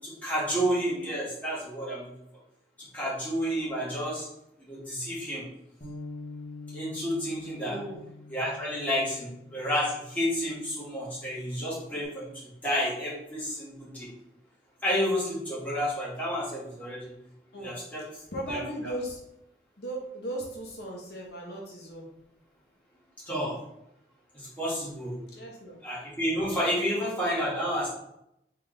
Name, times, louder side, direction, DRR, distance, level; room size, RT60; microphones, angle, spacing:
voice 1, 0.0-2.1 2.8-4.3 4.7-5.4 6.7-7.8 8.3-14.1 14.8-17.1 17.6-18.0 18.5-18.6 23.3-23.5 24.3-25.2 25.8-27.9, equal, 10° left, -8 dB, 1.7 m, -30 dB
Bass guitar, 5.8-12.1, left 2 dB, 40° left, 0.9 m, -46 dB
voice 2, 7.6-8.0 17.5-19.2 19.8-22.1 25.3-25.8, right 1 dB, 65° left, -2 dB, 0.9 m, -37 dB
3.5 x 3.3 x 3.8 m, 0.81 s
head